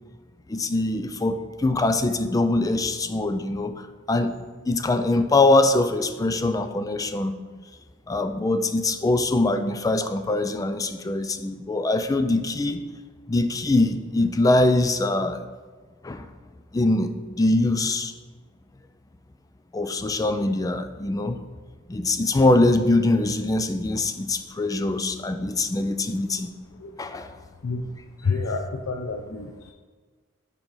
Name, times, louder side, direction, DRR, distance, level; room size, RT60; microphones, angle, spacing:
voice 1, 0.5-3.7 4.1-4.3 4.7-7.3 8.1-12.8 13.3-15.4 16.0-16.3 16.7-18.1 19.7-21.4 21.9-26.5 27.0-27.3, left 2 dB, 15° left, 9 dB, 0.4 m, -23 dB
voice 2, 28.2-29.7, left 4 dB, 80° left, 2 dB, 0.5 m, -28 dB
7.2 x 5.2 x 3.8 m, 1.4 s
head